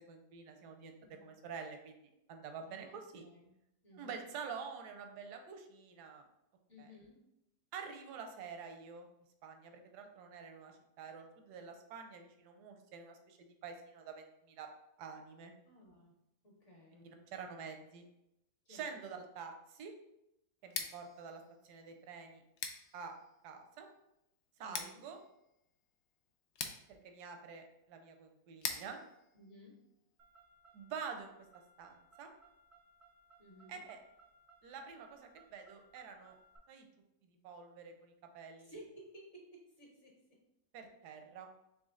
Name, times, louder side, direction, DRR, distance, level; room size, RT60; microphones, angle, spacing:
voice 1, 0.1-0.9 1.2-3.2 3.9-6.2 6.8-6.9 7.7-9.1 9.4-14.7 15.0-15.5 16.9-18.0 18.7-19.9 20.6-22.4 22.9-23.1 23.4-23.9 24.6-25.2 26.9-29.0 30.7-31.3 31.8-32.3 33.7-34.0 34.6-36.4 36.7-36.9 37.4-38.7 40.7-41.5, right 6 dB, 85° right, 5 dB, 1.2 m, -48 dB
voice 2, 2.7-3.5 3.8-4.2 6.7-7.2 15.6-16.1 16.4-17.2 18.6-19.2 24.6-25.0 29.3-29.8 33.4-33.8 38.6-40.4, equal, 50° left, -2 dB, 1.5 m, -57 dB
Scissors, 20.6-30.4, left 6 dB, 70° left, 0.6 m, -48 dB
Car, 30.2-36.6, right 3 dB, 70° right, 0.4 m, -65 dB
4.2 x 3.1 x 3.7 m, 0.84 s
omnidirectional pair, 1.7 m